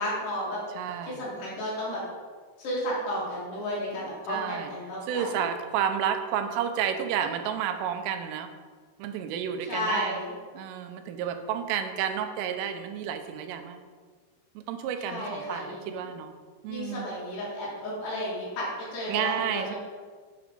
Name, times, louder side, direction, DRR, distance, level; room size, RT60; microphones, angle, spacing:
voice 1, 0.0-0.6 1.1-2.0 2.6-5.4 9.7-10.3 15.0-16.1 16.7-19.8, left 1 dB, 60° left, -7 dB, 5.0 m, -33 dB
voice 2, 0.8-1.2 4.3-4.7 5.1-8.5 9.0-10.2 10.5-13.8 14.6-16.3 16.6-17.1 19.1-19.8, right 8 dB, 90° right, 7 dB, 3.4 m, -31 dB
10.5 x 6.1 x 5.3 m, 1.5 s
omnidirectional pair, 5.6 m